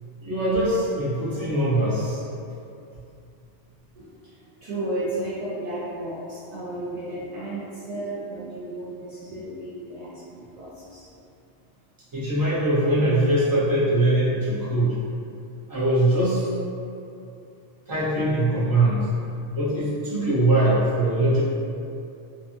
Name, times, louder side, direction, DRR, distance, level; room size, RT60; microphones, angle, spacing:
voice 1, 0.2-2.2 12.1-15.0 15.7-16.5 17.9-19.1 19.5-21.4, right 1 dB, 25° right, -10 dB, 0.6 m, -22 dB
voice 2, 1.3-1.8 3.9-11.1, right 1 dB, 65° right, -10 dB, 0.4 m, -34 dB
2.6 x 2.3 x 2.5 m, 2.6 s
omnidirectional pair, 1.2 m